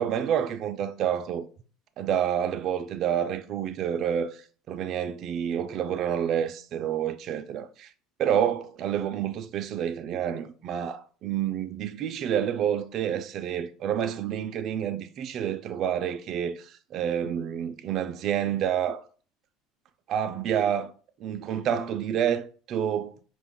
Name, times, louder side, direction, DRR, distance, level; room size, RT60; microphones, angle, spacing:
voice 1, 0.0-1.5 2.0-7.6 8.2-19.0 20.1-20.9 21.2-23.1, right 9 dB, 45° right, 0.3 m, -28 dB
4.6 x 2.3 x 3.6 m
cardioid pair, 130°, 0 cm